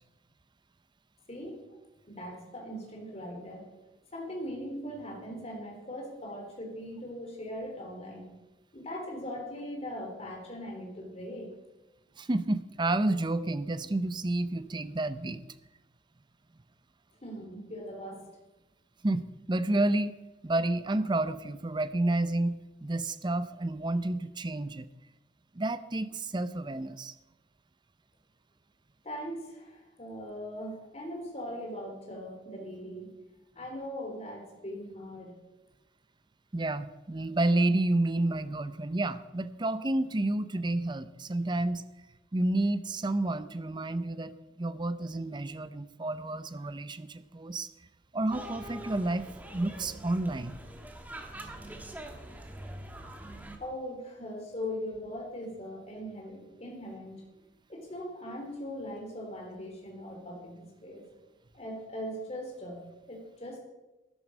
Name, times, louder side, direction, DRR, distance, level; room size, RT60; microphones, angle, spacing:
voice 1, 1.3-1.6 2.1-3.6 4.1-8.2 8.7-11.5 17.2-18.3 29.0-33.1 33.5-35.3 53.6-57.2 57.7-61.1 61.5-62.8 63.1-63.6, equal, 35° left, 1 dB, 3.3 m, -40 dB
voice 2, 12.2-15.4 19.0-20.1 20.4-24.9 25.5-27.1 36.5-41.8 42.3-47.7 48.1-49.3 49.5-50.6, right 2 dB, 25° right, 14 dB, 0.6 m, -30 dB
sound 1, 48.3-53.6, right 1 dB, 10° right, 1.3 m, -44 dB
12.5 x 11.0 x 5.2 m, 1.0 s
head